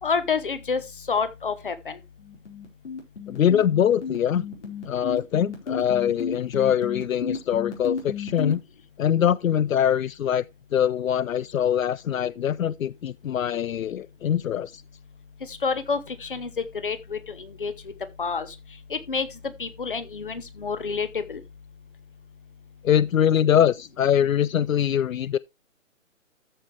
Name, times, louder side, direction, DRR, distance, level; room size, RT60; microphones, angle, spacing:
voice 1, 0.0-2.0 15.5-17.7 18.2-18.5 18.9-21.4, left 5 dB, 40° left, 1.1 m, -28 dB
sound 1, 2.2-8.5, left 6 dB, 60° left, 4.6 m, -32 dB
voice 2, 3.3-4.5 4.8-8.6 9.0-10.4 10.7-14.8 22.8-25.4, left 9 dB, 80° left, 0.5 m, -23 dB
13.5 x 5.5 x 3.3 m
hypercardioid pair, 175°, 40 cm